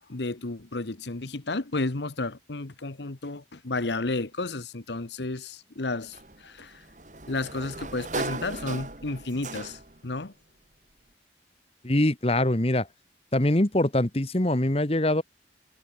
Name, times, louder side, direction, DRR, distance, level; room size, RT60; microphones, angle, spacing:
voice 1, 0.1-6.8 7.3-10.3, left 2 dB, 75° left, 1.2 m, -32 dB
Sliding door, 6.1-10.1, right 2 dB, 45° right, 3.3 m, -37 dB
voice 2, 11.8-12.9 13.3-15.2, left 1 dB, 35° left, 1.4 m, -23 dB
head